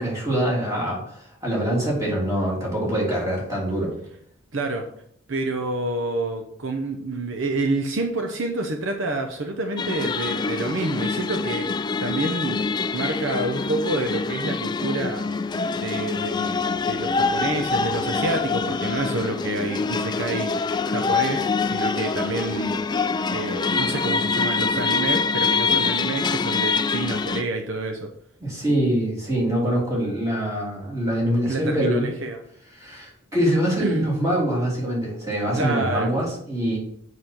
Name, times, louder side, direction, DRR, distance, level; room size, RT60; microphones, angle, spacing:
voice 1, 0.0-3.9 28.4-32.1 32.7-36.8, right 1 dB, 15° right, -4 dB, 3.1 m, -24 dB
voice 2, 4.5-4.9 5.3-15.3 15.8-16.6 16.9-22.8 23.3-28.1 31.5-32.4 33.8-34.1 35.6-36.1, right 2 dB, 65° right, 4 dB, 0.8 m, -28 dB
sound 1, 9.8-27.4, left 4 dB, 20° left, 0.3 m, -25 dB
7.6 x 6.3 x 4.4 m, 0.68 s
head